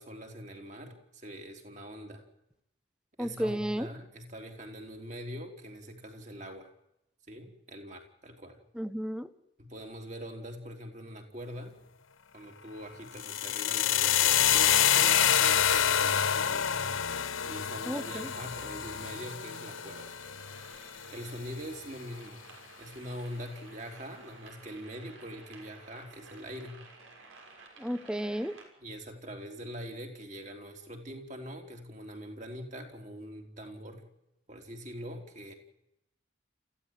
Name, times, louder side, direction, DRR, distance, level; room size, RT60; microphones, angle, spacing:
voice 1, 0.0-2.2 3.2-6.7 7.3-8.6 9.6-11.8 12.3-16.7 17.4-20.2 21.1-22.4 22.8-26.8 28.8-34.1 34.5-35.5, equal, 35° right, 3 dB, 3.7 m, -43 dB
voice 2, 3.2-3.9 8.8-9.3 17.9-18.3 27.8-28.5, equal, 5° right, 12 dB, 1.0 m, -33 dB
sound 1, 13.1-21.2, left 9 dB, 85° left, 1.1 m, -27 dB
sound 2, 18.0-28.6, right 3 dB, 85° right, 6.6 m, -54 dB
26.0 x 15.5 x 9.1 m, 0.86 s
head